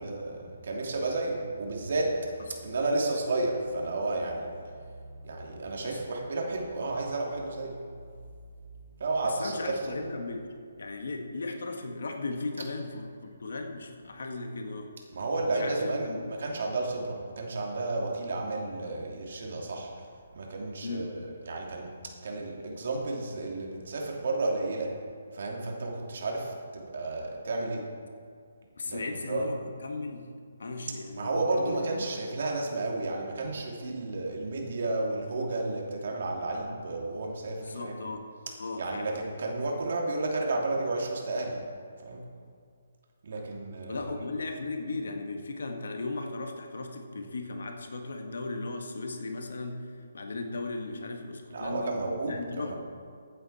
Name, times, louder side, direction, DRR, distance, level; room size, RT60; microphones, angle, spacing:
voice 1, 0.0-2.2 2.5-7.7 9.0-10.0 15.1-16.1 16.4-19.9 20.3-21.9 22.2-24.9 25.3-27.8 28.8-29.5 31.1-37.9 38.8-41.6 42.0-42.2 43.2-44.0 51.5-52.7, right 2 dB, 60° right, -1 dB, 2.9 m, -32 dB
voice 2, 9.2-10.5 10.8-14.9 15.5-16.4 20.8-21.2 28.8-30.3 30.6-32.1 37.6-38.3 38.6-39.1 43.9-52.0 52.3-52.7, left 3 dB, 75° left, 4 dB, 1.7 m, -37 dB
15.5 x 8.8 x 4.3 m, 2.2 s
hypercardioid pair, 155°, 0 cm